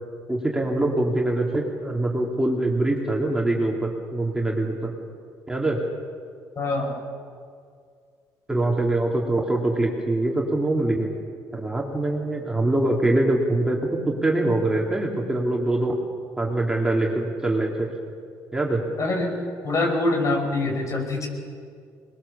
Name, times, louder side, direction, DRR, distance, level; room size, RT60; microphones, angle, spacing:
voice 1, 0.3-4.9 5.5-5.8 8.5-11.1 11.5-16.0 16.4-17.9 18.5-18.8, right 2 dB, 10° right, -1 dB, 3.2 m, -23 dB
voice 2, 6.6-7.0 19.0-19.3 19.6-21.3, left 2 dB, 45° left, 3 dB, 5.4 m, -24 dB
22.0 x 20.5 x 7.2 m, 2.2 s
supercardioid pair, 80°, 7 cm